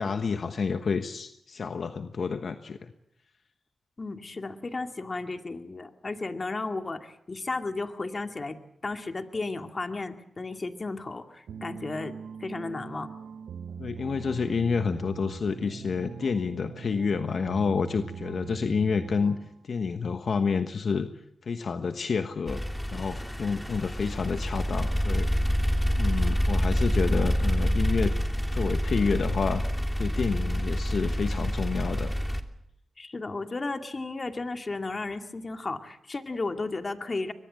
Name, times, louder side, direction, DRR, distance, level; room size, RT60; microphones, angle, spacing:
voice 1, 0.0-2.9 13.8-19.4 19.6-21.1 21.4-22.6 22.9-25.3 26.0-28.1 28.5-29.6 30.0-32.1, left 5 dB, 70° left, 8 dB, 1.2 m, -29 dB
voice 2, 4.0-13.1 33.0-37.3, left 3 dB, 45° left, 6 dB, 2.3 m, -34 dB
sound 1, 11.5-19.6, right 7 dB, 85° right, 1.1 m, -42 dB
sound 2, 22.5-32.4, equal, 5° left, 2.8 m, -27 dB
23.5 x 21.0 x 7.6 m, 0.79 s
cardioid pair, 50°, 0 cm